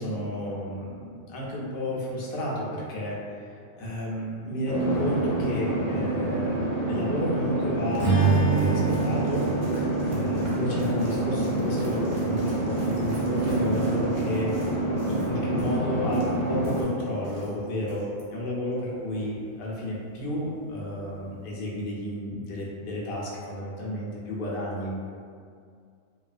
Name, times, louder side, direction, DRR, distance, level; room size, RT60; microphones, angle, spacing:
voice 1, 0.0-3.4 3.7-8.1 8.5-9.7 10.0-14.7 15.0-25.0, left 1 dB, 55° left, -5 dB, 0.7 m, -32 dB
sound 1, 4.6-16.8, right 1 dB, 10° left, 0.5 m, -27 dB
sound 2, 7.6-17.5 17.8-18.2, right 1 dB, 60° right, 0.7 m, -39 dB
Strum, 8.0-12.4, right 5 dB, 30° right, 0.9 m, -27 dB
2.3 x 2.3 x 2.4 m, 2.2 s
omnidirectional pair, 1.3 m